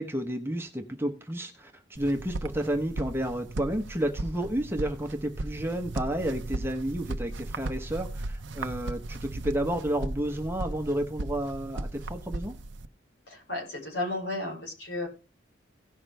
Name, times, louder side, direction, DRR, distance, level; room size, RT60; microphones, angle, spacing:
voice 1, 0.0-12.5, right 1 dB, 10° right, 1.0 m, -31 dB
sound 1, 2.0-12.9, right 2 dB, 85° right, 0.7 m, -36 dB
voice 2, 13.3-15.1, left 2 dB, 70° left, 5.1 m, -33 dB
17.0 x 5.9 x 3.4 m
head